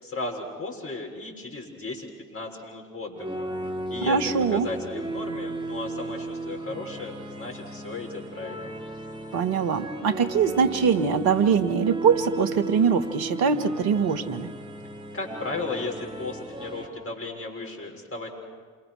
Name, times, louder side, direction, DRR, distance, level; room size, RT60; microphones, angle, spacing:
voice 1, 0.0-3.5 3.9-8.7 15.1-18.3, left 3 dB, 35° left, 0 dB, 6.8 m, -35 dB
sound 1, 3.1-16.8, right 1 dB, 10° right, 4.6 m, -36 dB
voice 2, 4.1-4.7 9.3-14.5, right 6 dB, 65° right, 10 dB, 1.7 m, -23 dB
28.0 x 23.5 x 6.5 m, 1.5 s
hypercardioid pair, 50°, 39 cm